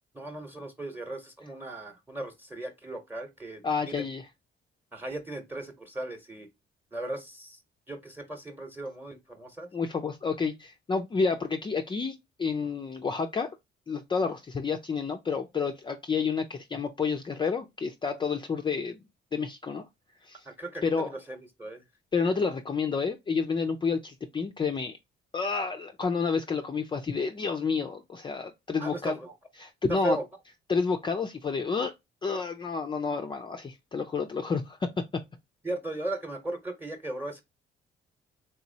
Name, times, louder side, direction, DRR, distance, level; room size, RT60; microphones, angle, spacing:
voice 1, 0.1-4.0 4.9-6.5 6.9-7.6 7.9-9.7 20.4-21.8 28.8-29.3 29.9-30.3 35.6-37.4, right 1 dB, 10° right, 0.9 m, -37 dB
voice 2, 3.6-4.2 9.7-13.5 13.9-19.0 19.3-19.8 20.2-20.5 20.8-21.1 22.1-25.0 25.3-29.2 29.6-30.2 30.7-31.9 32.2-34.9, left 5 dB, 25° left, 0.4 m, -30 dB
3.5 x 2.9 x 2.6 m
cardioid pair, 90°, 20 cm